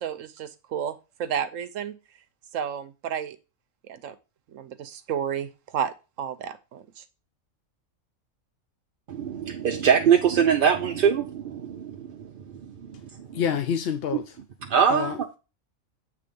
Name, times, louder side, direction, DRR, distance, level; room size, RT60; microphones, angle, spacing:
voice 1, 0.0-2.0 2.5-3.4 3.9-4.1 4.5-7.0, right 8 dB, 75° right, 1.1 m, -32 dB
voice 2, 9.1-13.4 14.7-15.1, right 7 dB, 55° right, 0.7 m, -23 dB
voice 3, 13.3-14.4 14.9-15.4, left 7 dB, 60° left, 0.7 m, -28 dB
7.9 x 3.4 x 5.1 m
omnidirectional pair, 1.3 m